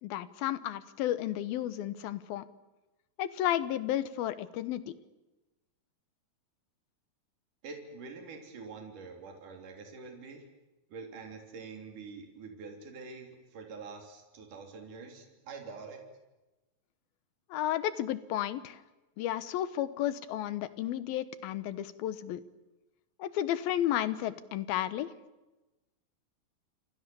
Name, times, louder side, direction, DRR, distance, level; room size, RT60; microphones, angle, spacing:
voice 1, 0.0-2.4 3.2-4.9 17.5-18.8 19.2-22.4 23.2-25.1, left 12 dB, 90° left, 14 dB, 3.0 m, -32 dB
voice 2, 7.6-10.4 10.9-16.0, right 4 dB, 60° right, 3 dB, 4.8 m, -46 dB
29.0 x 26.5 x 7.0 m, 1.1 s
omnidirectional pair, 4.1 m